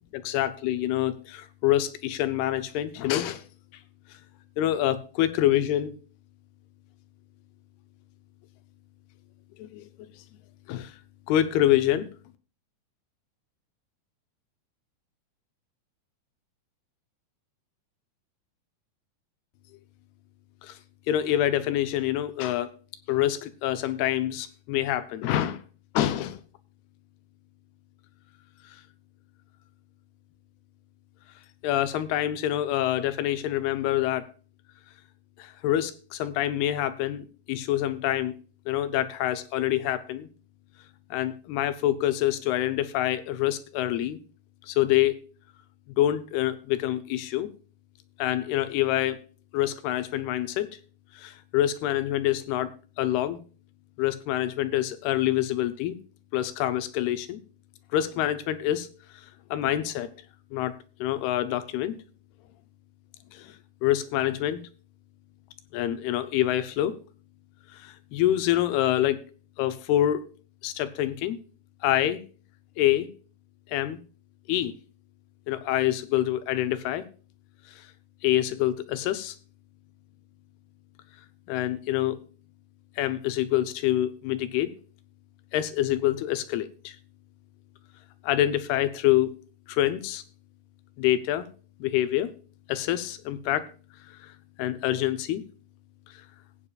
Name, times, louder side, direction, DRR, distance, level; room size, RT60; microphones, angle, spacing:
voice 1, 0.1-3.4 4.6-5.9 9.6-9.9 10.7-10.9 11.3-12.1 20.6-20.8 21.1-22.7 23.1-25.6 25.9-26.4 31.6-34.3 35.4-38.3 38.7-40.3 41.1-44.2 44.7-45.2 46.0-47.5 48.2-49.2 49.5-50.7 51.2-52.7 53.0-53.4 54.0-56.0 56.3-57.4 57.9-58.9 59.5-60.1 60.5-60.7 61.0-62.0 63.3-63.5 63.8-64.6 65.7-67.0 67.7-69.2 69.6-70.2 70.6-71.4 71.8-72.2 72.8-73.1 73.7-74.0 74.5-74.7 75.5-77.0 78.2-79.3 81.5-82.2 83.0-84.7 85.5-87.0 88.2-89.3 89.7-90.2 91.0-91.5 91.8-92.3 92.7-93.7 94.6-95.4, left 13 dB, 90° left, 2.8 m, -26 dB
19.0 x 8.8 x 2.4 m
omnidirectional pair, 4.4 m